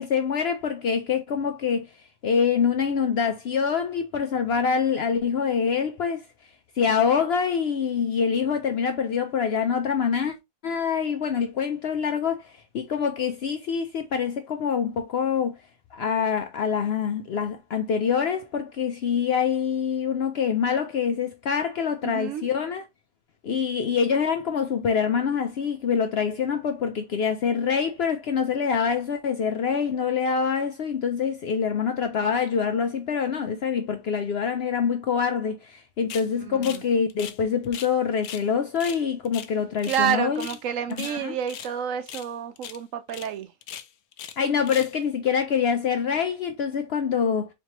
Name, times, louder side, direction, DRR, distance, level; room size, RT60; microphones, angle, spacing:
voice 1, 0.0-1.9 2.2-6.2 6.8-10.3 10.6-15.6 15.9-22.9 23.4-40.5 41.0-41.4 44.4-47.5, left 6 dB, 65° left, 0.6 m, -25 dB
voice 2, 22.0-22.4 36.4-36.8 39.8-43.5, right 9 dB, 70° right, 0.9 m, -29 dB
sound 1, 36.1-36.3 36.6-36.8 37.1-37.9 38.2-38.5 38.8-40.1 40.4-40.6 40.9-41.7 42.1-42.3 42.6-42.8 43.1-43.3 43.6-44.4 44.6-45.0, left 9 dB, 85° left, 1.1 m, -39 dB
4.3 x 3.0 x 2.8 m
omnidirectional pair, 1.5 m